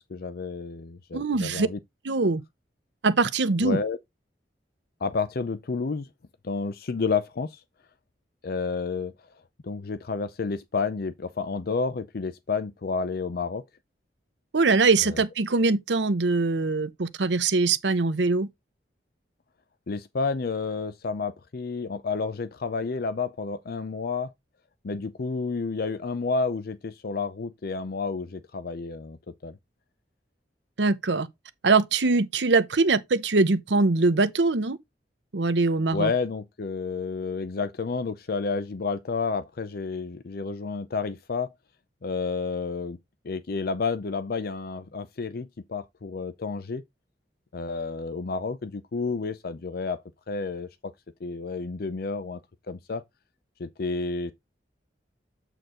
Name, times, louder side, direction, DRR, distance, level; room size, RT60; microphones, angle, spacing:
voice 1, 0.1-1.8 3.6-4.0 5.0-6.1 6.4-7.6 8.4-9.1 9.6-13.6 15.0-15.2 19.9-24.3 24.8-29.2 29.4-29.6 35.9-41.5 42.0-43.0 43.2-46.8 47.5-50.0 50.3-50.9 51.2-52.4 52.7-53.0 53.6-54.3, left 4 dB, 60° left, 0.6 m, -30 dB
voice 2, 1.1-1.7 2.0-2.4 3.0-3.8 14.5-18.5 30.8-31.3 31.6-34.8 35.3-36.1, right 3 dB, 85° right, 0.8 m, -22 dB
7.9 x 4.5 x 3.7 m
head